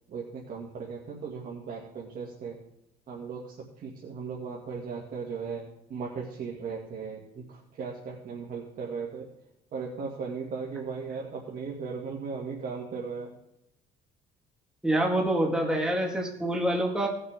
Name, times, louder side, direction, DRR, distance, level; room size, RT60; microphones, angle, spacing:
voice 1, 0.1-2.6 3.1-5.6 5.9-9.3 9.7-13.3, right 5 dB, 55° right, -3 dB, 2.1 m, -37 dB
voice 2, 14.8-17.1, right 1 dB, 5° right, -1 dB, 1.8 m, -26 dB
18.5 x 6.6 x 3.6 m, 0.86 s
cardioid pair, 110°, 17 cm